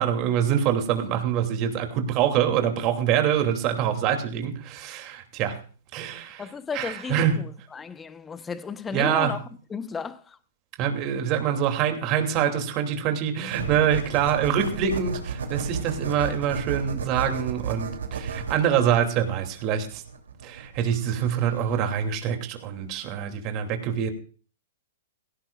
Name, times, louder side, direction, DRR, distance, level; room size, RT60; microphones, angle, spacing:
voice 1, 0.0-5.6 5.9-6.4 6.7-7.3 8.9-9.3 10.8-20.0 20.4-24.1, right 9 dB, 35° right, 2.8 m, -25 dB
voice 2, 6.4-10.4, left 5 dB, 15° left, 1.0 m, -34 dB
sound 1, 13.5-22.0, right 6 dB, 85° right, 3.0 m, -33 dB
17.5 x 16.5 x 2.5 m
hypercardioid pair, 140°, 0 cm